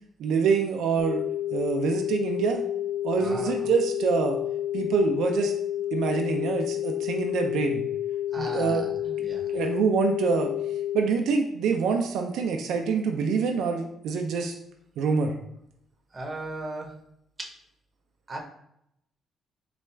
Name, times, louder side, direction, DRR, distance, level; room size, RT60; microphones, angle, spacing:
voice 1, 0.2-1.2 1.5-2.6 3.0-4.4 4.7-5.5 5.9-7.8 8.4-9.2 9.5-10.5 10.9-14.5 15.0-15.3, right 5 dB, 80° right, 3 dB, 0.4 m, -26 dB
sound 1, 1.0-11.0, left 12 dB, 35° left, 1.2 m, -30 dB
voice 2, 3.2-3.6 8.3-8.9 9.2-9.5 16.1-16.9 18.3-18.4, right 1 dB, 25° right, 1 dB, 0.8 m, -36 dB
4.2 x 2.3 x 3.2 m, 0.76 s
cardioid pair, 90°, 0 cm